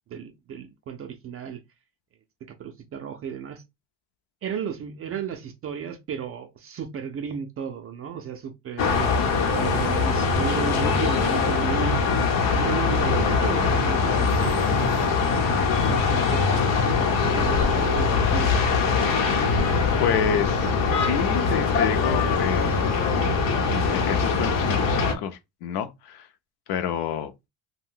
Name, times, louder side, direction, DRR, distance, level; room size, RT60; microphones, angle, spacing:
voice 1, 0.1-1.6 2.6-3.6 4.4-9.2 9.5-12.1 12.5-15.2 15.9-16.6 17.0-18.5, right 7 dB, 35° right, 0.4 m, -34 dB
sound 1, 8.8-25.1, left 4 dB, 80° left, 0.9 m, -22 dB
voice 2, 20.0-22.9 23.7-26.3 26.7-27.5, left 8 dB, 60° left, 0.6 m, -29 dB
2.5 x 2.2 x 3.6 m
cardioid pair, 125°, 44 cm